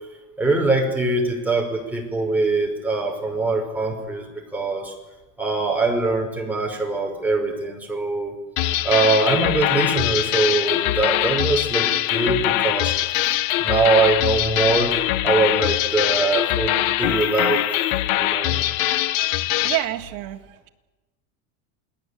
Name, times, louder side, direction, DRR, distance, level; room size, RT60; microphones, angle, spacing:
voice 1, 0.4-4.9 5.4-8.3 8.8-12.9 13.2-13.3 13.6-14.9 15.2-18.6, right 3 dB, 5° right, 0 dB, 5.7 m, -22 dB
sound 1, 8.6-19.8, left 14 dB, 50° left, 1.3 m, -22 dB
voice 2, 19.6-20.7, right 16 dB, 50° right, 3 dB, 2.9 m, -28 dB
28.5 x 20.0 x 8.6 m, 1.1 s
supercardioid pair, 145°, 44 cm